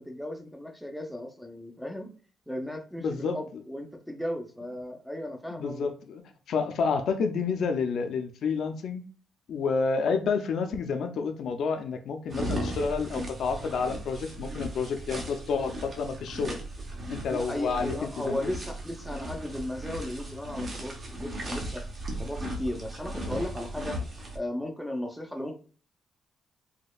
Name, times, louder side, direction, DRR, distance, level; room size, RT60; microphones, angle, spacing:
voice 1, 0.0-2.1 2.5-5.9 17.3-24.0 24.3-25.6, left 1 dB, ahead, 3 dB, 0.5 m, -36 dB
voice 2, 3.0-3.4 5.5-6.2 6.5-9.0 9.5-16.6 17.1-18.0 18.3-18.5, left 5 dB, 55° left, 6 dB, 0.5 m, -29 dB
sound 1, 12.3-24.4, right 1 dB, 30° right, 0.8 m, -37 dB
4.1 x 2.8 x 2.3 m, 0.40 s
cardioid pair, 175°, 0 cm